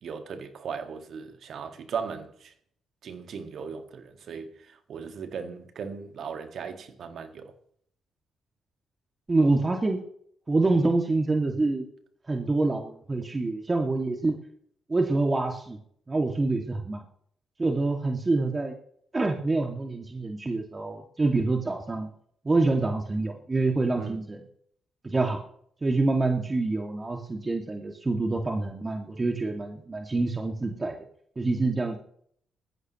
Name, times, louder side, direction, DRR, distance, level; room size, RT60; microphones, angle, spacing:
voice 1, 0.0-2.5 3.0-7.5 24.0-24.2, right 6 dB, 60° right, 1.9 m, -37 dB
voice 2, 9.3-10.0 10.5-11.9 12.3-14.4 14.9-15.8 16.1-17.0 17.6-18.7 19.1-22.1 22.4-24.4 25.0-25.4 25.8-31.0 31.4-32.0, right 3 dB, 30° right, 2.3 m, -26 dB
20.0 x 14.5 x 3.2 m
hypercardioid pair, 40°, 0 cm